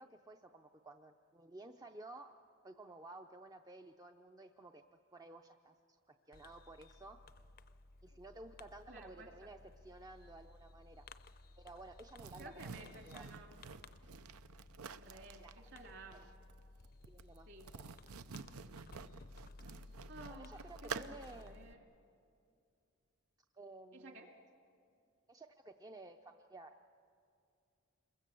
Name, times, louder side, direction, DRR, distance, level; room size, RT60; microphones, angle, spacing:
voice 1, 0.0-2.4 2.6-4.8 5.1-7.2 8.0-11.1 11.6-12.5 12.8-13.2 15.4-15.6 16.1-16.2 17.1-17.5 17.7-17.9 20.3-21.6 23.5-24.3 25.3-26.9, right 2 dB, 15° right, 5 dB, 0.5 m, -54 dB
Fireworks, 6.3-21.7, left 2 dB, 40° left, 0.6 m, -58 dB
voice 2, 8.9-9.3 12.4-13.6 15.0-16.3 17.5-17.7 20.1-21.8 23.9-24.3, right 2 dB, 55° right, 3 dB, 2.5 m, -54 dB
sound 1, 12.2-21.5, right 5 dB, 85° right, 0.7 m, -49 dB
27.5 x 22.5 x 7.6 m, 2.4 s
head